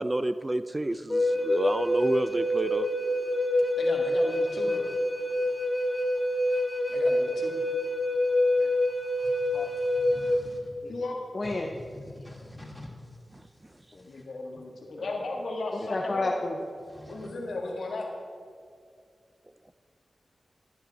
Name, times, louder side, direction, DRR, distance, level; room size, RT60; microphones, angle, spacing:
voice 1, 0.0-2.9, right 1 dB, 25° right, 12 dB, 0.5 m, -29 dB
Wind instrument woodwind instrument, 1.1-10.4, left 1 dB, 35° left, 1.3 m, -26 dB
voice 2, 3.8-4.9 6.5-6.6 6.9-7.5 10.9-11.2 14.1-16.4 17.0-18.1, left 2 dB, 85° left, 0 dB, 1.6 m, -35 dB
voice 3, 9.8-10.7 11.7-12.9 16.9-17.3, left 1 dB, 5° left, -2 dB, 2.8 m, -46 dB
voice 4, 11.3-11.7 13.9-14.1 15.0-15.1 15.7-16.6, left 2 dB, 50° left, 1 dB, 0.8 m, -31 dB
12.0 x 10.0 x 4.1 m, 2.2 s
cardioid pair, 50°, 0 cm